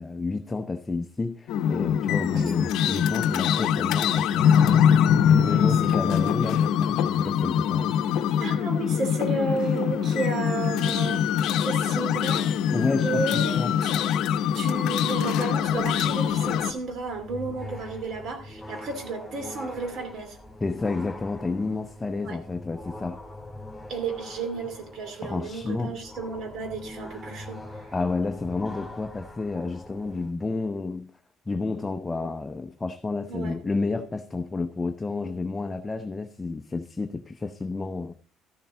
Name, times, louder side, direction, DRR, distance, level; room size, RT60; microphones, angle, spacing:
voice 1, 0.0-7.9 12.7-13.7 20.6-23.2 25.2-26.0 27.9-31.1 31.5-38.1, left 3 dB, 15° left, 0.6 m, -30 dB
sound 1, 1.5-16.7, left 8 dB, 75° left, 0.7 m, -23 dB
voice 2, 5.3-5.7 6.1-6.4 8.4-11.2 11.6-12.5 13.0-13.6 13.8-14.0 14.5-20.4 22.2-22.4 23.9-27.9 33.3-33.6, right 3 dB, 60° right, 2.5 m, -32 dB
sound 2, 15.5-30.3, left 1 dB, ahead, 3.1 m, -43 dB
13.5 x 7.0 x 3.7 m
cardioid pair, 120°, 0 cm